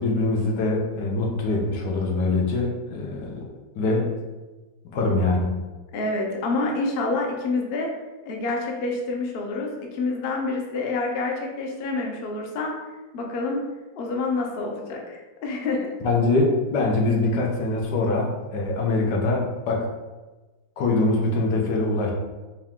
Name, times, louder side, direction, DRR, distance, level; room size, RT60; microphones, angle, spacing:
voice 1, 0.0-3.4 3.7-4.1 4.8-5.6 16.0-19.9 20.8-22.1, left 2 dB, 85° left, 0 dB, 1.4 m, -23 dB
voice 2, 5.9-7.9 8.2-12.7 13.1-13.6 14.0-15.9, left 3 dB, 60° left, 1 dB, 0.6 m, -27 dB
4.6 x 2.3 x 3.5 m, 1.2 s
omnidirectional pair, 1.8 m